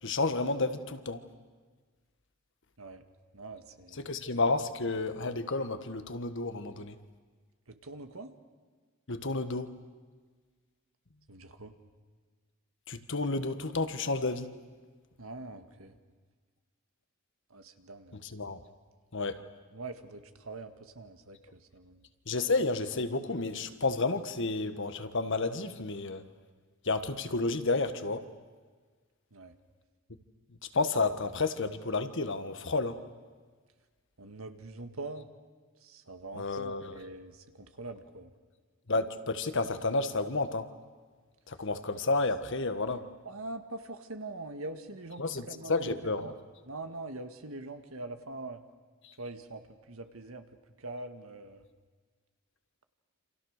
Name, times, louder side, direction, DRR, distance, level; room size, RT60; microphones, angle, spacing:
voice 1, 0.0-1.2 3.9-7.0 9.1-9.7 12.9-14.5 18.1-18.6 19.1-19.4 22.3-26.3 26.8-28.3 30.7-33.0 36.3-37.0 38.9-40.7 41.5-43.0 45.2-46.3 49.0-49.1, left 3 dB, 60° left, 10 dB, 1.5 m, -31 dB
voice 2, 3.3-4.1 7.7-8.3 11.3-11.7 15.2-15.9 17.5-18.2 19.7-22.1 29.3-29.6 34.2-35.3 35.8-38.3 43.2-46.4 46.7-48.6 49.2-50.5 50.8-51.6, right 2 dB, 80° right, 7 dB, 1.9 m, -43 dB
28.5 x 27.0 x 6.6 m, 1.5 s
head